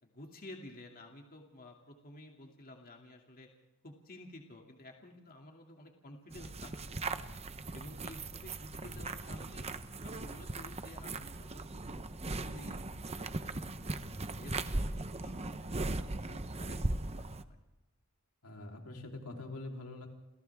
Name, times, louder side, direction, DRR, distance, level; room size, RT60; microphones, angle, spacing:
voice 1, 0.0-3.5 3.8-6.7 7.7-9.7 10.0-11.6 11.9-12.8 13.2-13.9 14.2-14.9 15.2-17.6, left 1 dB, 40° left, 1 dB, 2.6 m, -52 dB
sound 1, 6.3-17.4, right 2 dB, 30° right, 0.9 m, -39 dB
voice 2, 18.4-20.1, left 2 dB, 80° left, 1 dB, 3.7 m, -45 dB
29.5 x 28.5 x 3.6 m, 1.0 s
head